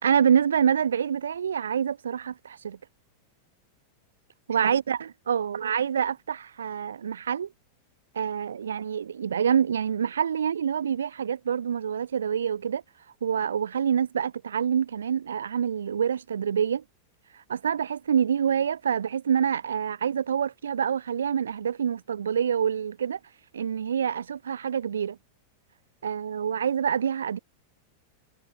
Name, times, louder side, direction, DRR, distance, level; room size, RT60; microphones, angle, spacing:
voice 1, 0.0-2.8 4.5-7.5 8.1-12.8 13.2-16.8 17.5-23.2 23.5-25.2 26.0-27.4, right 8 dB, 70° right, 2.9 m, -26 dB
figure-of-eight pair, 90°, 0 cm